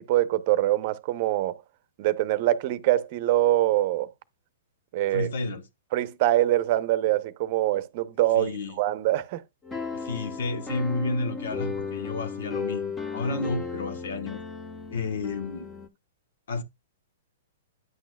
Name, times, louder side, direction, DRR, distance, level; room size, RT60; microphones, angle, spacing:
voice 1, 0.1-1.6 2.0-4.1 4.9-5.3 5.9-9.4, right 14 dB, 50° right, 0.7 m, -24 dB
voice 2, 5.1-5.6 8.4-8.8 9.9-14.4 14.9-15.7 16.5-16.6, left 3 dB, 70° left, 1.2 m, -31 dB
sound 1, 9.6-15.9, left 4 dB, 20° left, 1.1 m, -35 dB
9.4 x 6.1 x 2.3 m
hypercardioid pair, 125°, 0 cm